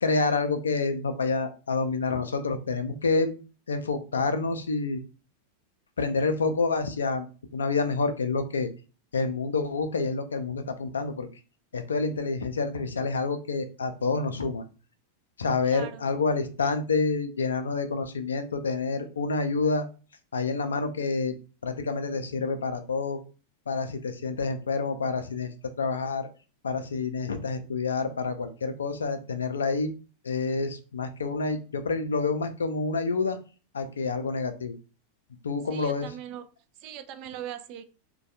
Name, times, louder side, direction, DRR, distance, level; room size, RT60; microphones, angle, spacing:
voice 1, 0.0-3.4 3.7-5.0 6.0-7.3 7.5-8.7 9.1-11.3 11.7-14.6 15.4-19.9 20.3-21.3 21.6-23.2 23.7-25.5 25.8-26.3 26.6-29.9 30.2-33.4 33.7-34.8 35.4-36.1, left 4 dB, 70° left, 0.4 m, -28 dB
voice 2, 15.6-16.2 35.7-36.5 36.8-37.8, right 10 dB, 40° right, 0.4 m, -40 dB
3.1 x 2.2 x 2.7 m
figure-of-eight pair, 90°, 0 cm